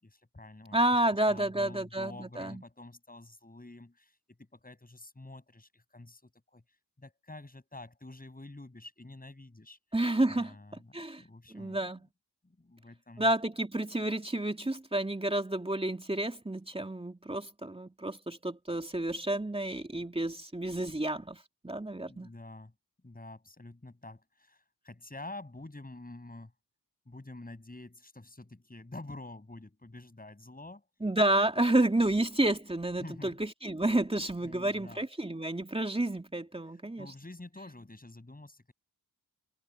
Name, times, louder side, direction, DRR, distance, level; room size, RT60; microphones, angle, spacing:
voice 1, 0.0-1.0 1.2-6.6 7.0-9.8 10.2-11.8 12.4-13.3 22.1-22.7 23.0-26.5 27.1-30.9 33.0-33.4 34.4-35.0 36.7-38.7, left 2 dB, 20° left, 8.0 m, -48 dB
voice 2, 0.7-2.6 9.9-10.5 10.9-11.2 11.5-12.0 13.2-22.3 31.0-37.1, right 1 dB, 15° right, 2.6 m, -30 dB
supercardioid pair, 50°, 40 cm